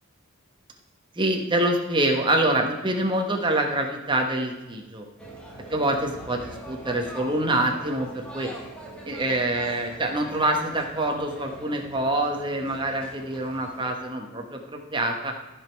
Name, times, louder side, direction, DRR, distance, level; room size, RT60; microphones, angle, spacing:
voice 1, 1.1-5.1 5.7-8.5 9.0-15.3, right 1 dB, 20° right, 2 dB, 1.3 m, -26 dB
sound 1, 5.2-13.9, right 1 dB, 5° left, 1.5 m, -42 dB
14.5 x 5.3 x 4.6 m, 1.1 s
head